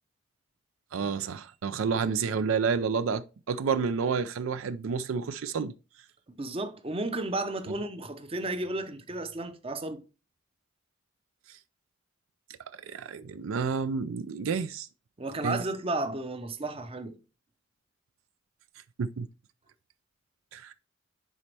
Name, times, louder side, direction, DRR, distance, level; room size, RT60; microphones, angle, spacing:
voice 1, 0.9-5.7 11.5-11.6 12.7-14.9 15.4-15.6 19.0-19.3 20.5-20.7, right 5 dB, 75° right, 0.4 m, -30 dB
voice 2, 6.3-10.0 15.2-17.2, right 2 dB, 30° right, 0.7 m, -33 dB
10.0 x 4.2 x 3.3 m
head